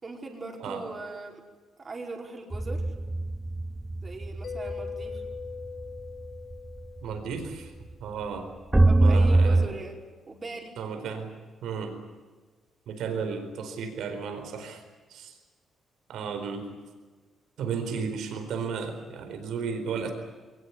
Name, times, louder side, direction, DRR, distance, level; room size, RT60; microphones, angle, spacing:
voice 1, 0.0-1.4 1.8-2.8 4.0-5.2 8.9-10.8, right 3 dB, 30° right, 2 dB, 5.1 m, -40 dB
sound 1, 2.5-7.0 7.3-7.5 7.9-8.1 8.7-9.7, right 2 dB, 10° right, 0.7 m, -23 dB
Mallet percussion, 4.4-7.9, left 6 dB, 60° left, 1.4 m, -41 dB
voice 2, 7.0-7.7 8.0-8.5 9.0-9.8 10.8-11.3 11.6-12.0 12.9-14.8 15.1-15.4 16.1-16.8 17.6-20.1, right 6 dB, 80° right, 6 dB, 4.4 m, -34 dB
22.5 x 19.5 x 9.7 m, 1.3 s
cardioid pair, 90°, 0 cm